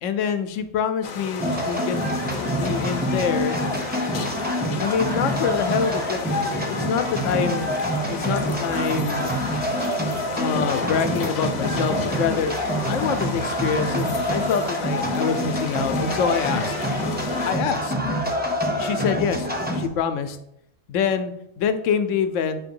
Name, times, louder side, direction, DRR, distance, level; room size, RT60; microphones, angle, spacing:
voice 1, 0.0-2.0 2.5-3.6 4.8-9.4 10.3-12.5 12.8-16.7 17.5-17.9 18.8-20.4 20.9-22.7, left 7 dB, 90° left, 9 dB, 1.0 m, -26 dB
sound 1, 1.0-17.5, left 5 dB, 50° left, 0.5 m, -34 dB
sound 2, 1.4-19.9, equal, 10° right, 0.6 m, -26 dB
7.7 x 2.8 x 5.3 m, 0.82 s
omnidirectional pair, 1.2 m